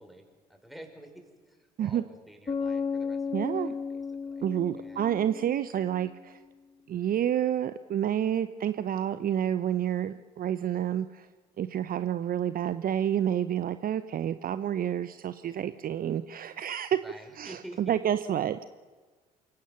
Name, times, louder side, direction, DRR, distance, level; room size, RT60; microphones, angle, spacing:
voice 1, 0.0-4.5 4.7-5.1 17.0-18.0, right 1 dB, ahead, 4 dB, 5.4 m, -50 dB
Bass guitar, 2.5-6.1, left 5 dB, 25° left, 1.6 m, -34 dB
voice 2, 3.3-3.7 4.4-6.4 6.9-11.3 11.6-17.0 17.4-18.6, right 10 dB, 45° right, 12 dB, 0.7 m, -29 dB
28.0 x 17.0 x 6.8 m, 1.4 s
hypercardioid pair, 55°, 21 cm